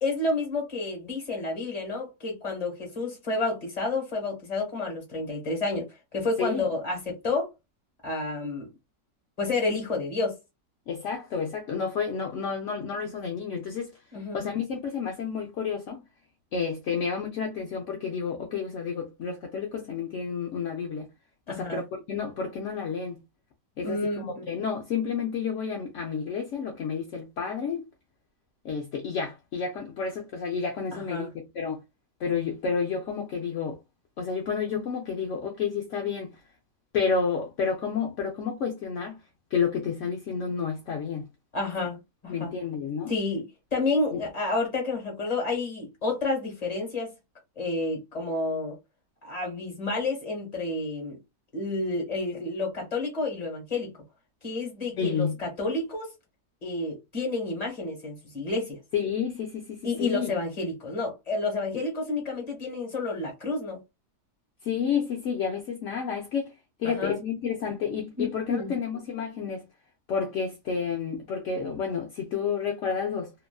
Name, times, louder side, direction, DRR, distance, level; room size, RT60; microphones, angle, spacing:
voice 1, 0.0-7.5 8.0-8.7 9.4-10.4 14.1-14.4 21.5-21.8 23.8-24.5 30.9-31.3 41.5-42.0 42.2-42.5 43.1-47.1 47.6-48.7 49.2-51.2 51.5-53.9 54.4-56.1 56.6-58.8 59.8-63.8 66.8-67.1 68.2-68.7, left 3 dB, 25° left, 1.2 m, -30 dB
voice 2, 10.9-14.0 14.3-16.0 16.5-21.1 21.5-23.2 23.8-27.9 28.6-31.8 32.2-33.8 34.2-36.4 36.9-39.2 39.5-41.3 42.3-43.1 44.1-44.2 55.0-55.4 58.9-60.3 64.6-66.5 66.8-69.7 70.1-73.3, left 6 dB, 65° left, 0.7 m, -30 dB
2.8 x 2.5 x 2.2 m
omnidirectional pair, 1.8 m